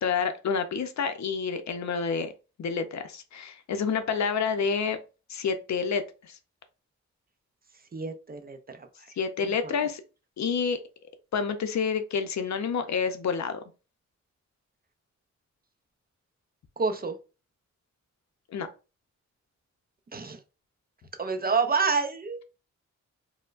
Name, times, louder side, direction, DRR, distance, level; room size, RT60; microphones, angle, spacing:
voice 1, 0.0-2.3 2.6-5.0 5.3-6.4 9.2-10.0 10.4-10.8 11.3-13.6 18.5-18.7, left 6 dB, 70° left, 9 dB, 0.5 m, -28 dB
voice 2, 7.9-8.8 9.6-9.7 16.8-17.1 20.1-20.4 21.2-22.4, right 4 dB, 30° right, 7 dB, 0.4 m, -28 dB
4.3 x 2.1 x 2.4 m, 0.32 s
wide cardioid pair, 115°, 29 cm